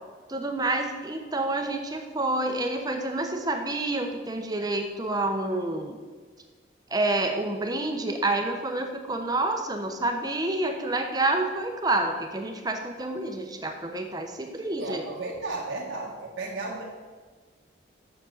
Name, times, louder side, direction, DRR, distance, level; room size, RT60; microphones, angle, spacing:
voice 1, 0.3-6.0 6.9-15.0, right 2 dB, 20° right, 4 dB, 0.8 m, -28 dB
voice 2, 14.8-16.8, right 3 dB, 80° right, -3 dB, 1.2 m, -34 dB
7.1 x 6.6 x 6.3 m, 1.4 s
head